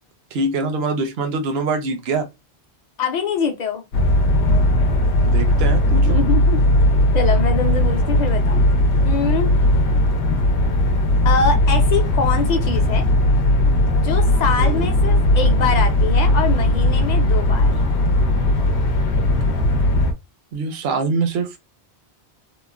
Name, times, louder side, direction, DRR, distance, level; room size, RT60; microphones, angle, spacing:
voice 1, 0.3-2.3 5.2-6.2 14.6-14.9 20.5-21.6, right 3 dB, 70° right, 0.8 m, -24 dB
voice 2, 3.0-3.8 6.0-6.6 7.1-8.6 9.0-9.5 11.2-13.0 14.0-17.7, left 5 dB, 50° left, 0.6 m, -24 dB
sound 1, 3.9-20.1, left 1 dB, 85° left, 0.9 m, -17 dB
3.0 x 2.0 x 2.2 m
omnidirectional pair, 1.1 m